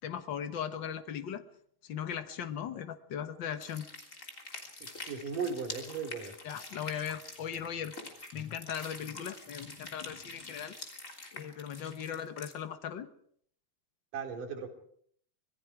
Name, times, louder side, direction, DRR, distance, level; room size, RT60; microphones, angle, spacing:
voice 1, 0.0-1.4 1.8-3.9 6.4-7.9 8.3-10.8 11.3-13.1, left 8 dB, 65° left, 9 dB, 1.1 m, -38 dB
sound 1, 3.5-12.5, left 2 dB, 25° left, 3.3 m, -46 dB
voice 2, 4.8-6.3 14.1-14.7, right 5 dB, 70° right, 3 dB, 4.5 m, -37 dB
26.0 x 21.0 x 4.8 m, 0.63 s
omnidirectional pair, 3.9 m